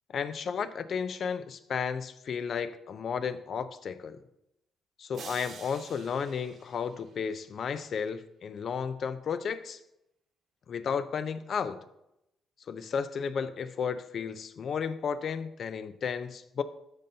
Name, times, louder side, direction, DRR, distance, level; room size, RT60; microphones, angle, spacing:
voice 1, 0.1-4.2 5.0-9.8 10.7-11.8 12.7-16.6, left 6 dB, 55° left, 12 dB, 0.5 m, -33 dB
sound 1, 5.1-7.5, right 5 dB, 65° right, 1.2 m, -48 dB
13.0 x 5.3 x 2.8 m, 0.84 s
cardioid pair, 90°, 0 cm